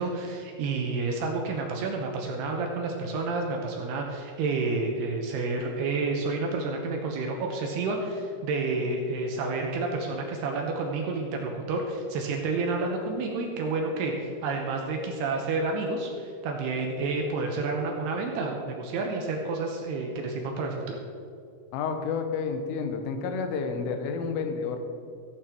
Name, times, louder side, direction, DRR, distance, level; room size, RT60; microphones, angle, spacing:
voice 1, 0.0-21.0, right 3 dB, 75° right, 1 dB, 2.6 m, -30 dB
voice 2, 21.7-24.8, left 5 dB, 90° left, 6 dB, 3.6 m, -30 dB
15.0 x 8.8 x 4.5 m, 2.5 s
omnidirectional pair, 5.5 m